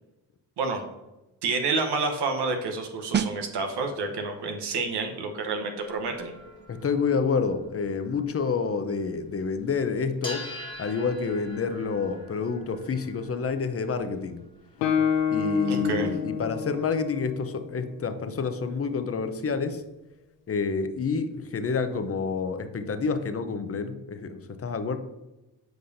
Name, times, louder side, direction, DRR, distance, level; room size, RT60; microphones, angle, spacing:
voice 1, 0.6-0.9 1.4-6.3 15.7-16.1, right 4 dB, 65° right, 4 dB, 1.1 m, -29 dB
sound 1, 3.1-13.6 13.9-14.2, right 8 dB, 25° right, 0.4 m, -39 dB
sound 2, 5.8-9.3 9.5-9.7 10.1-15.3, left 1 dB, 10° left, 1.6 m, -44 dB
voice 2, 6.7-10.5 10.8-14.4 15.3-19.8 20.5-25.0, left 5 dB, 30° left, 9 dB, 0.8 m, -28 dB
Guitar, 14.8-18.5, left 8 dB, 90° left, 0.7 m, -28 dB
7.8 x 5.0 x 2.7 m, 1.0 s
supercardioid pair, 50°, 43 cm